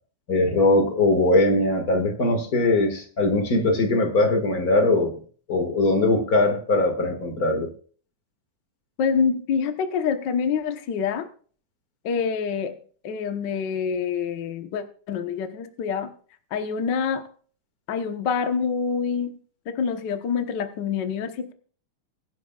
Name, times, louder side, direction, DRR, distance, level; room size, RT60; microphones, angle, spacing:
voice 1, 0.3-5.2 5.5-7.7, left 2 dB, 35° left, 6 dB, 1.8 m, -21 dB
voice 2, 9.0-11.3 12.0-12.8 13.0-16.1 16.5-17.2 17.9-19.4 19.7-21.5, left 6 dB, 65° left, 8 dB, 1.1 m, -26 dB
21.0 x 11.5 x 2.4 m, 0.43 s
omnidirectional pair, 3.6 m